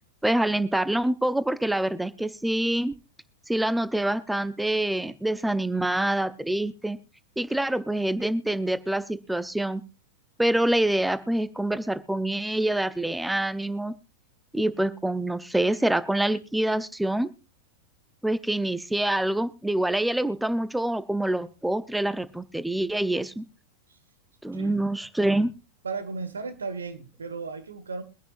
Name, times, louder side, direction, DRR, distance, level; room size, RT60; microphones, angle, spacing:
voice 1, 0.2-2.9 3.5-7.0 7.4-9.8 10.4-13.9 14.5-17.3 18.2-23.4 24.4-25.5, right 1 dB, 5° right, 14 dB, 0.7 m, -26 dB
voice 2, 25.8-28.0, right 4 dB, 70° right, 11 dB, 1.5 m, -35 dB
23.5 x 10.0 x 2.5 m, 0.30 s
figure-of-eight pair, 90°, 0 cm